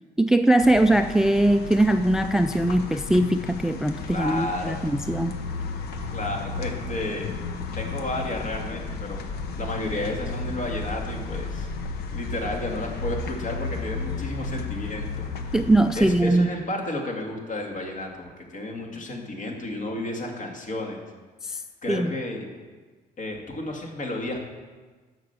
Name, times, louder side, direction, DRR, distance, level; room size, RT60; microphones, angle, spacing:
voice 1, 0.2-5.3 15.5-16.5 21.4-21.6 21.9-22.1, right 1 dB, 5° right, 9 dB, 0.3 m, -21 dB
sound 1, 0.6-16.2, left 4 dB, 70° left, 1.0 m, -33 dB
voice 2, 4.1-4.8 6.1-7.3 7.7-9.2 9.6-11.7 12.1-15.6 15.9-21.0 21.5-22.5 23.2-24.5, left 2 dB, 50° left, 1 dB, 2.4 m, -32 dB
10.5 x 6.5 x 6.8 m, 1.4 s
cardioid pair, 110°, 17 cm